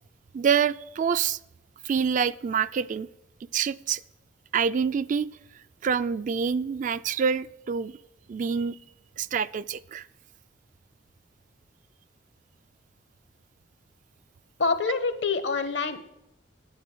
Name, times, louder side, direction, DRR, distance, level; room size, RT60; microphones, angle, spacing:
voice 1, 0.3-1.4 1.8-3.1 3.5-4.0 4.5-5.3 5.8-7.9 8.3-8.8 9.2-10.1, right 6 dB, 45° right, 0.3 m, -26 dB
voice 2, 14.6-16.0, left 4 dB, 70° left, 1.1 m, -26 dB
9.4 x 9.1 x 6.1 m
head